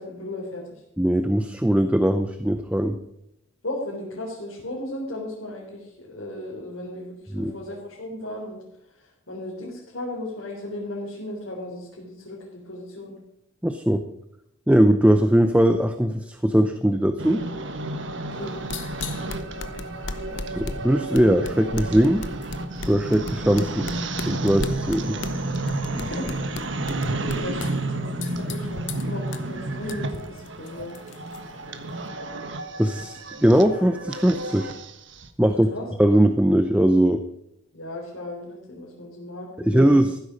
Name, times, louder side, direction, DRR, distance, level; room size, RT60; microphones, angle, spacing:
voice 1, 0.0-0.8 3.6-8.6 8.9-13.2 18.4-18.6 25.9-26.3 27.0-31.0 35.5-35.9 37.7-39.9, left 1 dB, 85° left, -4 dB, 3.8 m, -36 dB
voice 2, 1.0-3.0 7.3-7.5 13.6-14.0 14.7-17.4 20.6-22.2 22.8-23.9 24.2-25.2 32.8-34.7 35.4-35.7 36.0-37.2 39.6-40.2, right 1 dB, 5° right, 8 dB, 0.6 m, -20 dB
sound 1, 17.2-35.3, right 2 dB, 60° right, 1.4 m, -31 dB
sound 2, 18.3-32.1, left 3 dB, 60° left, 1.0 m, -38 dB
15.0 x 12.5 x 5.2 m, 0.82 s
head